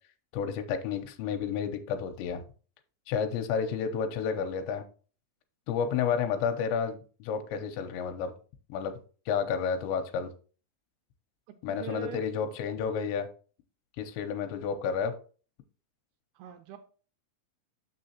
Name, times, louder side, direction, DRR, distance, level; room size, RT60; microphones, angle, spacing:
voice 1, 0.3-2.4 3.1-4.8 5.7-8.3 8.7-8.9 9.3-10.3 11.6-13.3 14.0-15.1, left 7 dB, 90° left, 7 dB, 2.9 m, -31 dB
voice 2, 11.5-12.2 16.4-16.8, right 9 dB, 85° right, 6 dB, 2.3 m, -42 dB
6.5 x 6.4 x 2.7 m, 0.38 s
omnidirectional pair, 5.1 m